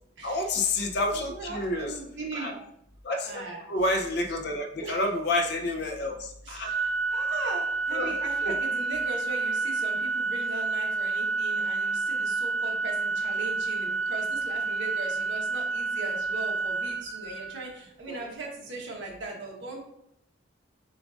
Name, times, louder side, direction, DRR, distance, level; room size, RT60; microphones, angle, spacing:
voice 1, 0.2-2.0 2.3-2.6 3.0-6.7 7.9-8.2 8.4-8.6 18.1-18.2, left 2 dB, 55° left, 4 dB, 0.6 m, -29 dB
voice 2, 1.1-2.5 3.2-3.6 4.8-4.9 6.5-19.8, right 3 dB, 70° right, -1 dB, 1.1 m, -39 dB
Organ, 6.7-17.7, right 3 dB, 40° right, 0.7 m, -29 dB
6.9 x 2.4 x 2.5 m, 0.75 s
head